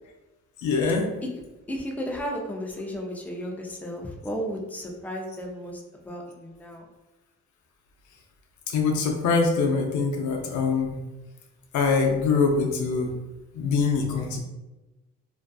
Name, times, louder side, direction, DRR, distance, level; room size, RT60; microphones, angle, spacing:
voice 1, 0.6-1.1 8.7-11.0 11.7-13.1 13.5-14.4, left 4 dB, 75° left, 2 dB, 0.6 m, -23 dB
voice 2, 1.7-6.9, equal, 5° left, 0 dB, 0.5 m, -34 dB
2.6 x 2.3 x 2.3 m, 1.1 s
cardioid pair, 90°, 30 cm